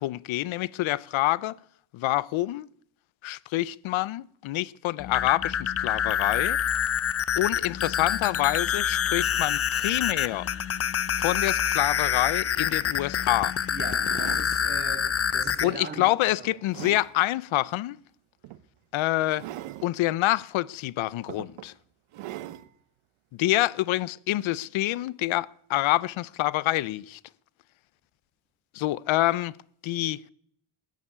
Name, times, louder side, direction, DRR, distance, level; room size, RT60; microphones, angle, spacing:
voice 1, 0.0-1.6 1.9-2.7 3.2-5.6 5.8-6.6 7.4-10.5 11.2-13.6 15.6-18.0 18.9-19.4 19.8-21.7 23.4-27.2 28.8-29.5 29.8-30.2, left 16 dB, 70° left, 0.7 m, -27 dB
sound 1, 5.0-15.7, left 9 dB, 30° left, 0.5 m, -27 dB
sound 2, 12.3-12.4 12.6-12.8 13.9-14.5 15.2-15.4 15.9-17.1 18.4-18.6 19.4-19.9 20.7-20.8 21.3-21.7 22.1-22.7 23.4-23.5, right 14 dB, 80° right, 0.9 m, -40 dB
voice 2, 13.7-16.1 16.4-16.6, right 5 dB, 20° right, 0.9 m, -40 dB
14.0 x 7.0 x 9.9 m
cardioid pair, 160°, 49 cm